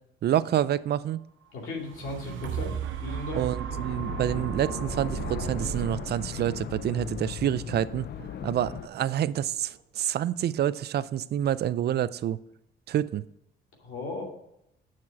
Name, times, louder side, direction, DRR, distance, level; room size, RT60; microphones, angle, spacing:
voice 1, 0.2-1.2 3.4-8.1 8.4-12.4 12.9-13.2, right 11 dB, 55° right, 17 dB, 0.4 m, -28 dB
voice 2, 1.5-3.5 13.8-14.2, left 2 dB, 80° left, -1 dB, 2.5 m, -36 dB
sound 1, 1.6-9.7 10.3-10.4, right 8 dB, 75° right, 0.9 m, -36 dB
sound 2, 3.7-8.9, left 10 dB, 55° left, 0.5 m, -38 dB
7.4 x 6.0 x 5.9 m, 0.80 s
cardioid pair, 90°, 20 cm